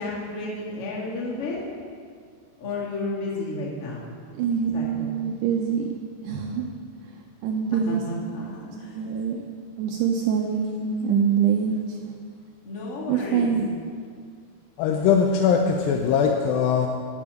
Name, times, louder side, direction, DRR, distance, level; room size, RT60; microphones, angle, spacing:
voice 1, 0.0-1.6 2.6-4.1 4.7-5.1 7.7-8.9 12.6-13.5, left 2 dB, 40° left, -5 dB, 2.9 m, -32 dB
voice 2, 4.3-5.9 6.2-6.7 7.1-8.2 8.6-9.5 9.8-12.2 13.1-13.8, right 7 dB, 85° right, 2 dB, 1.8 m, -25 dB
voice 3, 14.8-16.9, left 6 dB, 80° left, 3 dB, 2.2 m, -21 dB
12.5 x 6.2 x 7.8 m, 2.1 s
omnidirectional pair, 4.5 m